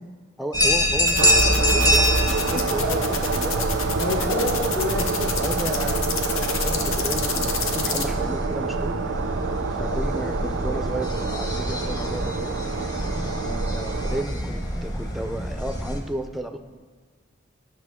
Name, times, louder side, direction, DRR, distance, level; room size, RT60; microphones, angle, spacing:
voice 1, 0.4-3.7 4.2-4.3 5.4-9.1 9.8-12.6 13.7-16.6, right 1 dB, ahead, 5 dB, 0.4 m, -33 dB
sound 1, 0.5-16.0, equal, 20° left, 0.9 m, -26 dB
sound 2, 1.1-8.1, left 7 dB, 80° left, 0.7 m, -29 dB
sound 3, 1.2-14.2, right 5 dB, 65° right, 0.4 m, -28 dB
voice 2, 2.5-2.9 3.9-5.3 9.8-10.0 13.4-13.6, left 2 dB, 50° left, -4 dB, 1.1 m, -29 dB
11.0 x 5.9 x 3.6 m, 1.5 s
head